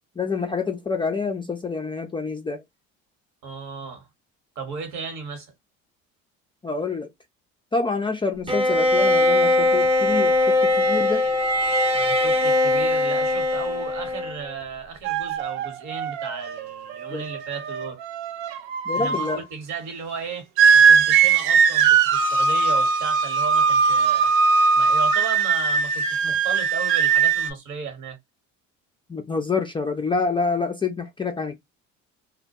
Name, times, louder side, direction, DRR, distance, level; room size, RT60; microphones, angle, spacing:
voice 1, 0.2-2.6 6.6-7.1 7.7-11.2 17.1-17.2 18.9-19.4 29.1-31.6, left 4 dB, 15° left, 0.3 m, -27 dB
voice 2, 3.4-4.1 4.5-5.5 11.9-18.0 18.9-20.5 20.7-24.3 24.7-28.2, right 5 dB, 55° right, 1.2 m, -35 dB
Bowed string instrument, 8.5-14.5, left 2 dB, 15° right, 0.7 m, -20 dB
sound 1, 15.0-19.4 20.6-27.5, right 5 dB, 85° right, 0.5 m, -20 dB
2.2 x 2.2 x 2.6 m
supercardioid pair, 80°, 34 cm